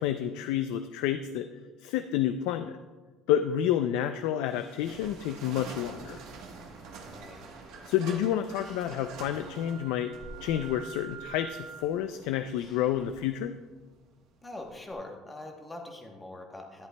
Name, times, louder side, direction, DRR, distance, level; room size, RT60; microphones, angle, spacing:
voice 1, 0.0-1.5 1.8-2.8 3.3-6.2 7.9-10.1 10.4-13.5, left 10 dB, 80° left, 9 dB, 0.4 m, -29 dB
sound 1, 4.5-14.9, right 4 dB, 60° right, 1.1 m, -47 dB
Engine, 6.0-13.4, left 2 dB, 40° left, 1.4 m, -57 dB
voice 2, 7.0-7.4 14.4-16.9, left 2 dB, 10° left, 2 dB, 1.0 m, -43 dB
Wind instrument woodwind instrument, 8.6-11.9, right 8 dB, 85° right, 1.2 m, -47 dB
11.5 x 10.5 x 2.2 m, 1.3 s
cardioid pair, 165°, 0 cm